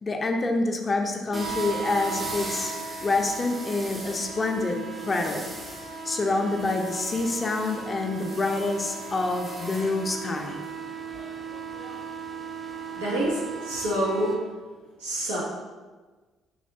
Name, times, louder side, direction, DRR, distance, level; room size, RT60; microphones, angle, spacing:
voice 1, 0.0-2.7 3.0-4.8 5.0-5.5 6.1-10.6, left 3 dB, 35° left, 3 dB, 0.5 m, -27 dB
sound 1, 1.3-14.3, right 4 dB, 30° right, 0.6 m, -36 dB
voice 2, 13.0-14.3 15.0-15.4, equal, 85° right, -6 dB, 0.8 m, -27 dB
3.2 x 2.8 x 2.7 m, 1.3 s
hypercardioid pair, 50°, 0 cm